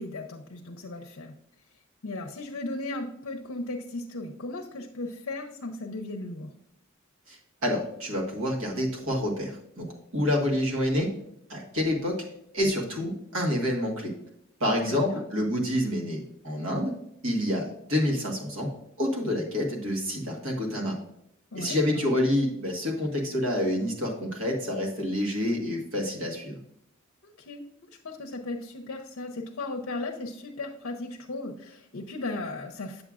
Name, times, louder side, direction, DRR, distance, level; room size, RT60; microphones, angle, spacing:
voice 1, 0.0-1.3 2.0-6.5 14.9-15.2 21.5-22.2 27.2-27.6 28.0-33.0, left 2 dB, 70° left, 3 dB, 0.7 m, -36 dB
voice 2, 7.3-9.9 10.1-11.1 11.5-12.2 12.5-14.1 14.6-16.9 17.2-18.7 19.0-21.0 21.5-26.6, left 1 dB, 70° right, -1 dB, 1.5 m, -28 dB
7.8 x 7.1 x 2.5 m, 0.76 s
head